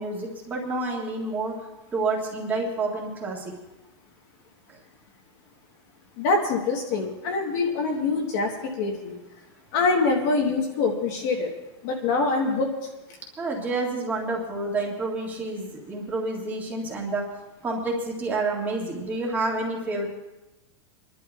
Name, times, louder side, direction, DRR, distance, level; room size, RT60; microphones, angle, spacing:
voice 1, 0.0-1.5 1.9-3.5 4.7-4.8 13.4-17.2 17.6-20.1, right 2 dB, 10° right, -2 dB, 1.8 m, -29 dB
voice 2, 6.2-9.1 9.7-11.5 11.8-12.7, left 3 dB, 35° left, 1 dB, 1.2 m, -24 dB
30.0 x 11.5 x 2.4 m, 1.0 s
supercardioid pair, 175°, 16 cm